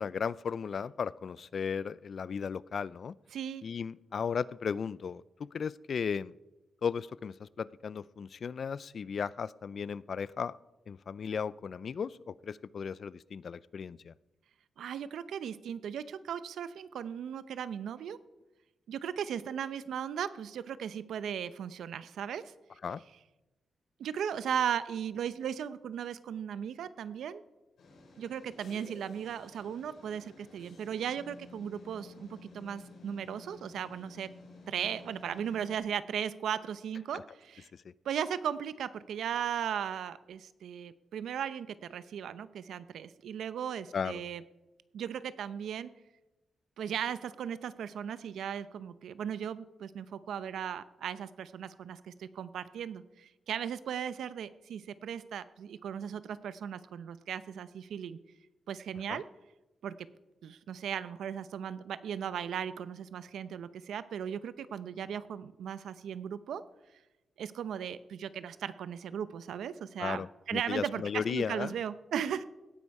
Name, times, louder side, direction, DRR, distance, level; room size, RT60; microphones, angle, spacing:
voice 1, 0.0-3.1 3.6-6.3 6.8-10.5 10.9-14.1 22.8-23.0 43.9-44.2 59.1-59.2 70.0-71.7, left 6 dB, 45° left, 20 dB, 0.4 m, -35 dB
voice 2, 3.3-3.6 14.8-18.2 18.9-22.4 24.0-27.4 28.2-34.3 34.7-37.7 38.0-44.4 44.9-45.9 46.8-58.2 58.7-59.2 59.8-59.9 60.4-66.6 67.4-72.4, right 8 dB, 90° right, 14 dB, 0.7 m, -37 dB
sound 1, 27.8-35.8, left 3 dB, 65° left, 4.4 m, -53 dB
17.0 x 9.6 x 4.8 m, 1.0 s
wide cardioid pair, 155°, 0 cm